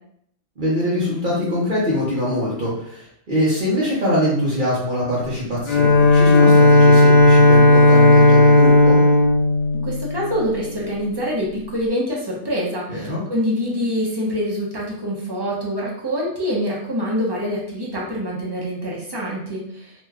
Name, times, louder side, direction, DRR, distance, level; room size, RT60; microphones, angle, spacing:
voice 1, 0.6-9.0 12.9-13.2, equal, 45° right, -7 dB, 0.9 m, -23 dB
Bowed string instrument, 5.7-10.7, left 2 dB, 90° left, 1.1 m, -13 dB
voice 2, 9.7-19.9, equal, 25° right, -5 dB, 0.6 m, -25 dB
2.9 x 2.2 x 3.5 m, 0.70 s
omnidirectional pair, 1.4 m